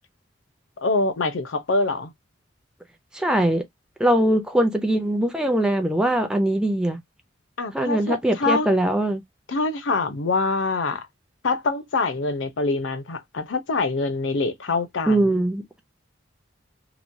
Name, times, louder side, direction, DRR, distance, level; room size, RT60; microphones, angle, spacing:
voice 1, 0.8-2.1 7.6-8.7 9.5-11.1 11.4-15.3, left 3 dB, 90° left, 0.7 m, -25 dB
voice 2, 3.1-3.6 4.0-7.0 7.7-9.2 15.1-15.8, right 1 dB, 5° right, 0.4 m, -21 dB
3.0 x 2.2 x 2.6 m
head